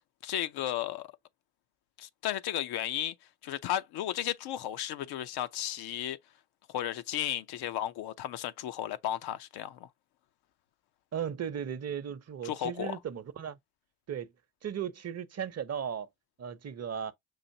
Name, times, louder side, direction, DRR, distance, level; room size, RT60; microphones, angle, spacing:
voice 1, 0.2-1.1 2.0-3.1 3.4-6.2 6.7-9.9 12.4-13.0, left 11 dB, 65° left, 0.7 m, -34 dB
voice 2, 11.1-13.6 14.1-14.3 14.6-16.1 16.4-17.1, right 8 dB, 40° right, 0.9 m, -36 dB
5.7 x 2.7 x 2.7 m
hypercardioid pair, 55°, 41 cm